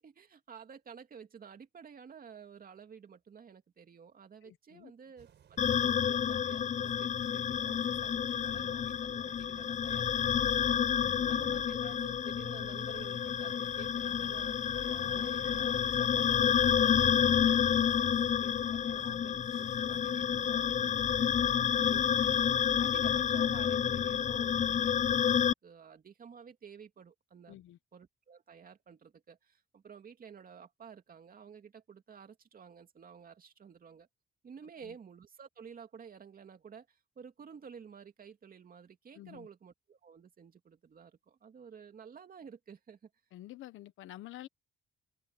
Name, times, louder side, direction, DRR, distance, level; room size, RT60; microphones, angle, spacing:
voice 1, 0.0-10.8 11.3-14.6 14.9-22.4 22.8-27.6 27.9-34.1 34.4-43.1, right 7 dB, 45° right, 2.6 m, -52 dB
voice 2, 4.4-4.9 11.0-11.6 27.5-27.8 34.8-35.0 39.1-39.5 43.3-44.5, left 14 dB, 80° left, 1.1 m, -49 dB
sound 1, 5.2-24.2, right 9 dB, 60° right, 5.2 m, -57 dB
sound 2, 5.6-25.5, left 8 dB, 40° left, 0.4 m, -29 dB
cardioid pair, 90°, 20 cm